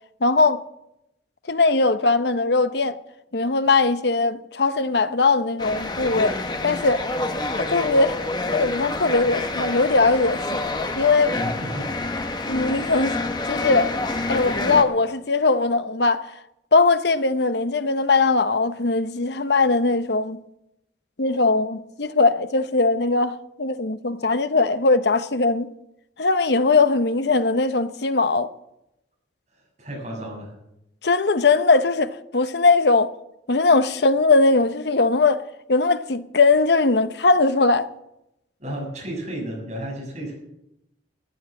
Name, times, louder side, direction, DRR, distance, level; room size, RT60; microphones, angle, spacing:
voice 1, 0.2-0.6 1.5-3.0 3.3-6.4 6.6-7.0 7.6-8.2 8.5-10.5 10.9-11.4 12.5-13.1 13.4-13.9 14.3-16.4 16.7-20.4 21.2-25.7 26.2-28.5 31.0-33.1 33.5-35.4 35.7-37.9, left 3 dB, 65° left, 0.8 m, -20 dB
sound 1, 5.6-14.8, left 2 dB, 25° left, 1.1 m, -28 dB
voice 2, 11.4-11.9 29.8-30.5 38.6-40.3, right 1 dB, 40° right, 7.0 m, -32 dB
14.5 x 9.7 x 7.7 m
head